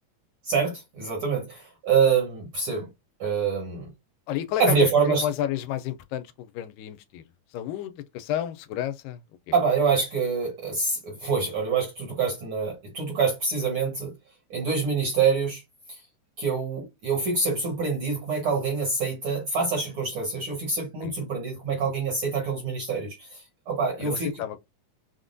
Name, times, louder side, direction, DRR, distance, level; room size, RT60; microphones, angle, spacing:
voice 1, 0.4-2.9 3.2-3.9 4.6-5.3 9.5-14.1 14.5-15.6 15.9-16.0 16.4-24.3, right 5 dB, 55° right, 1.5 m, -26 dB
voice 2, 4.3-7.2 7.5-9.2 21.0-21.1 24.0-24.6, left 11 dB, 85° left, 2.2 m, -31 dB
5.8 x 2.1 x 2.5 m
omnidirectional pair, 3.9 m